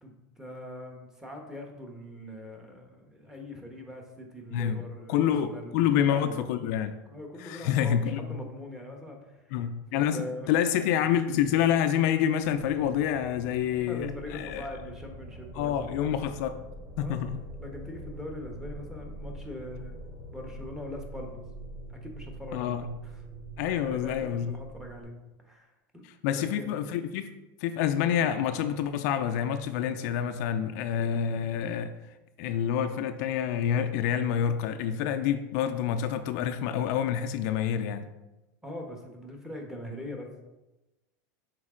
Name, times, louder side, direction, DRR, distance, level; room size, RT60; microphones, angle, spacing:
voice 1, 0.0-6.5 7.1-9.5 9.9-10.5 13.9-15.9 17.0-17.2 17.6-21.4 21.9-23.2 23.8-26.0 26.3-26.7 38.6-40.3, left 1 dB, 5° right, 1 dB, 1.2 m, -42 dB
voice 2, 5.1-6.9 7.4-8.2 9.5-10.2 10.5-14.7 15.6-16.5 17.0-17.4 22.5-22.8 23.6-24.5 26.0-27.3 27.6-31.9 32.4-38.1, left 9 dB, 65° left, 8 dB, 0.4 m, -27 dB
sound 1, 12.4-25.0, right 1 dB, 50° right, 2.0 m, -44 dB
6.2 x 4.1 x 3.7 m, 1.0 s
supercardioid pair, 120°, 10 cm